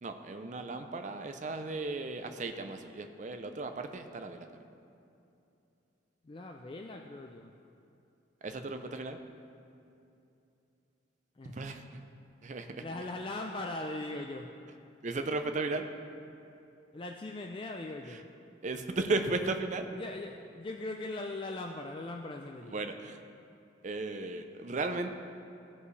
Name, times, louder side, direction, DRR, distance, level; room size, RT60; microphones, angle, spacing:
voice 1, 0.0-4.5 8.4-9.2 11.4-11.8 12.4-12.8 15.0-15.9 18.1-18.2 18.6-19.9 22.7-23.2 23.8-25.1, right 3 dB, 40° right, 7 dB, 0.5 m, -35 dB
voice 2, 6.2-7.5 11.4-11.6 12.8-14.5 16.9-18.2 19.9-22.8, left 2 dB, 25° left, 3 dB, 0.3 m, -40 dB
15.5 x 5.4 x 3.2 m, 2.7 s
head